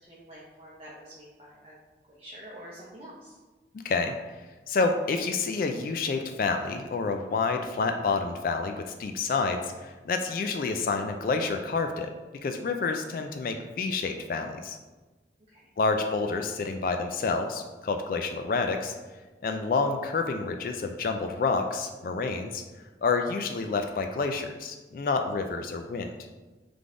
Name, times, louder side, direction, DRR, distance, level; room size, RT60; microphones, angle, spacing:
voice 1, 0.0-1.8 2.1-3.4 15.5-15.6, equal, 35° right, -7 dB, 0.8 m, -47 dB
voice 2, 4.7-12.1 12.4-14.8 15.8-18.9 19.4-22.6 23.0-26.1, left 4 dB, 50° left, 5 dB, 0.3 m, -28 dB
3.9 x 3.4 x 3.6 m, 1.2 s
head